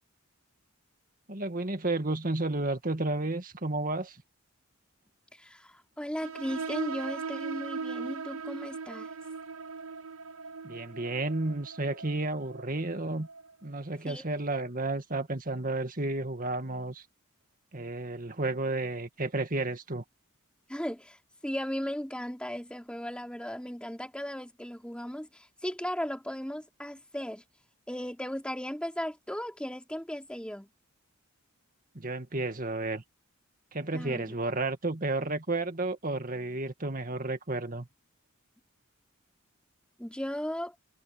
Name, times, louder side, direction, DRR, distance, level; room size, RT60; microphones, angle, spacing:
voice 1, 1.3-4.2 10.6-13.3 13.6-17.1 17.7-20.0 31.9-33.0 33.7-37.9, right 2 dB, 40° right, 2.0 m, -32 dB
voice 2, 5.3-9.1 14.0-14.4 20.7-27.4 27.9-30.7 33.9-34.2 40.0-40.7, equal, 5° left, 3.3 m, -36 dB
sound 1, 6.2-13.5, right 5 dB, 80° right, 0.8 m, -39 dB
head